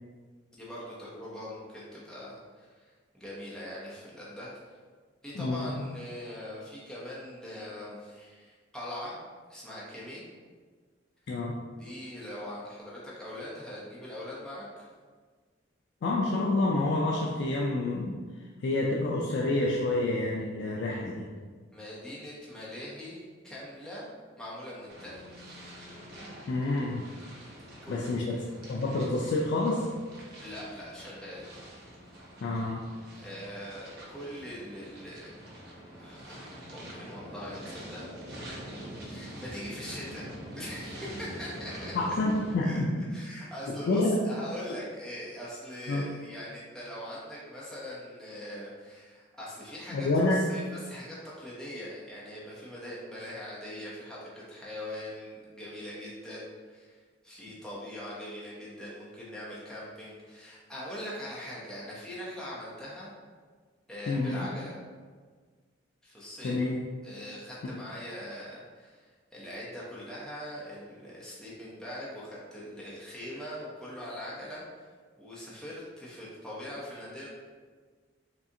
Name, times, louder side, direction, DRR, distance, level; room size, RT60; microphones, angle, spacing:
voice 1, 0.5-4.5 5.2-9.2 9.5-10.2 11.8-14.9 21.7-24.1 24.4-25.5 27.8-28.2 30.4-31.5 33.1-35.3 36.0-38.1 39.1-40.3 40.6-41.9 42.6-42.8 43.1-63.1 63.9-64.8 66.0-66.6 67.0-74.9 75.2-77.3, left 1 dB, 5° left, -8 dB, 0.6 m, -42 dB
voice 2, 5.3-5.8 11.3-11.6 16.0-18.2 18.6-21.3 26.5-27.0 27.9-28.4 28.7-29.9 32.4-32.8 41.9-43.1 43.7-44.2 45.9-46.1 49.9-50.4 64.1-64.5 66.4-66.8, left 2 dB, 60° left, -2 dB, 0.3 m, -28 dB
washington potomac waveplane, 24.9-42.6, equal, 60° right, 0.7 m, -45 dB
3.6 x 2.4 x 2.7 m, 1.5 s
head